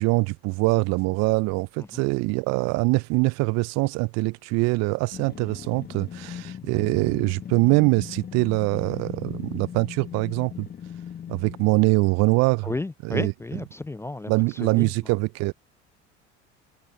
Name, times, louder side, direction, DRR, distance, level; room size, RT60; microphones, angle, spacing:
voice 1, 0.0-10.7 11.3-12.7 13.0-13.3 14.3-15.5, right 26 dB, 50° right, 0.4 m, -23 dB
sound 1, 5.1-11.9, left 8 dB, 30° left, 1.1 m, -39 dB
voice 2, 12.6-14.3 14.6-15.1, left 2 dB, 10° left, 0.4 m, -33 dB
hypercardioid pair, 65°, 35 cm